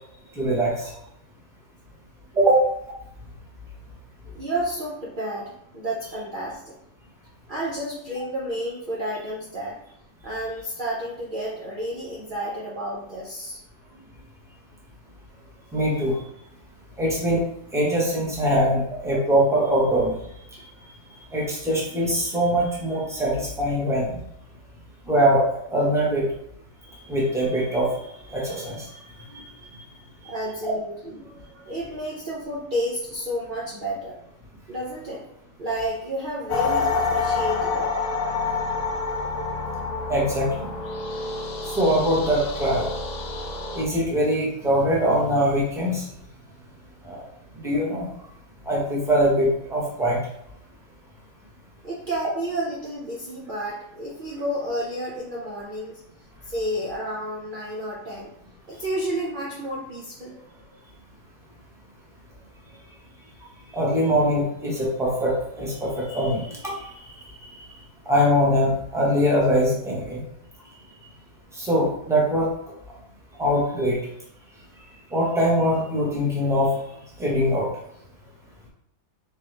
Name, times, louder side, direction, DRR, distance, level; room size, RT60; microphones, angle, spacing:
voice 1, 0.4-0.9 2.4-2.6 15.7-16.2 17.0-17.4 17.7-20.1 21.3-24.1 25.1-25.4 25.7-26.3 27.1-27.9 28.3-28.9 29.3-29.4 29.7-29.8 30.6-30.7 40.1-40.7 41.7-42.9 43.7-46.1 47.0-47.2 47.6-48.1 48.7-50.2 63.7-67.0 67.4-67.5 68.0-70.2 71.5-72.5 73.4-74.0 75.1-76.7 77.2-77.7, equal, ahead, -4 dB, 1.1 m, -22 dB
voice 2, 4.3-6.8 7.5-9.8 10.2-13.6 15.7-15.8 28.4-28.7 30.2-34.2 34.7-35.2 35.6-38.0 51.8-56.0 56.4-58.3 58.7-60.4 60.7-60.8, right 1 dB, 45° right, -5 dB, 0.8 m, -31 dB
sound 1, 36.5-43.8, left 4 dB, 70° left, 0.4 m, -27 dB
4.1 x 3.5 x 3.3 m, 0.73 s
omnidirectional pair, 1.4 m